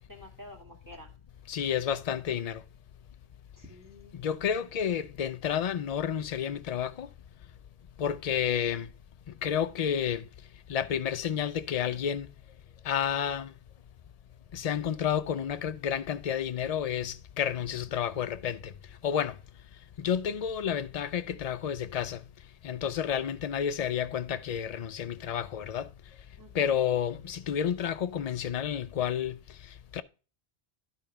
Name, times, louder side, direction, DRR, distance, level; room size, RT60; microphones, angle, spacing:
voice 1, 0.1-1.1 3.6-4.2 26.4-26.8, left 1 dB, 20° right, 2.1 m, -49 dB
voice 2, 1.5-2.6 4.1-7.1 8.0-8.9 9.4-10.3 10.7-12.3 12.8-13.5 14.5-18.7 19.0-19.4 20.0-22.2 22.6-25.9 26.5-29.4 29.9-30.0, left 8 dB, 50° left, 0.5 m, -30 dB
11.0 x 4.9 x 3.3 m
omnidirectional pair, 1.1 m